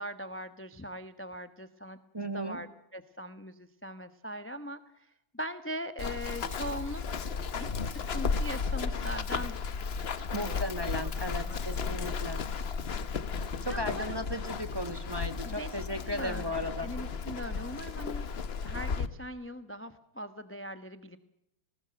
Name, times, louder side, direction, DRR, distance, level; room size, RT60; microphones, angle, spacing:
voice 1, 0.0-2.0 2.3-7.2 7.6-9.6 10.1-10.6 11.0-11.1 11.4-11.6 11.9-12.2 13.7-14.3 15.4-18.3 18.6-21.2, equal, 10° left, 10 dB, 0.6 m, -41 dB
voice 2, 2.1-2.6 10.3-12.4 13.6-16.9, equal, 15° right, 8 dB, 1.0 m, -36 dB
Run, 6.0-19.1, left 5 dB, 45° left, 0.9 m, -34 dB
20.0 x 19.5 x 7.6 m, 0.79 s
omnidirectional pair, 2.1 m